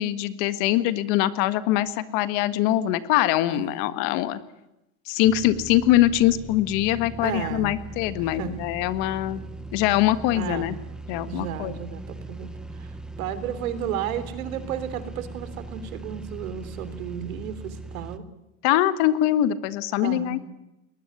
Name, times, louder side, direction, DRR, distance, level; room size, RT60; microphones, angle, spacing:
voice 1, 0.0-4.4 5.1-9.4 9.7-10.8 11.1-11.7 18.6-20.4, left 13 dB, 50° left, 13 dB, 1.7 m, -23 dB
voice 2, 3.5-3.8 7.2-7.8 8.2-8.6 10.3-10.8 11.3-18.2 20.0-20.4, right 9 dB, 85° right, 13 dB, 3.5 m, -33 dB
sound 1, 5.2-18.2, right 2 dB, ahead, 0.8 m, -39 dB
21.5 x 20.0 x 9.7 m, 0.91 s
supercardioid pair, 155°, 41 cm